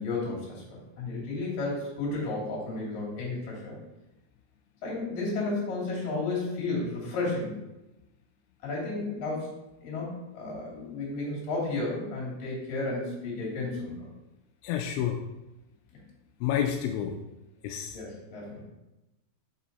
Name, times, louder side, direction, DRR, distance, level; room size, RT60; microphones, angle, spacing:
voice 1, 0.0-3.8 4.8-7.6 8.6-9.5 9.8-14.1 17.9-18.6, left 3 dB, 55° left, -4 dB, 4.1 m, -33 dB
voice 2, 14.6-15.2 16.4-17.2 17.6-18.0, left 9 dB, 85° left, 3 dB, 2.9 m, -29 dB
7.3 x 6.6 x 4.1 m, 0.98 s
omnidirectional pair, 5.2 m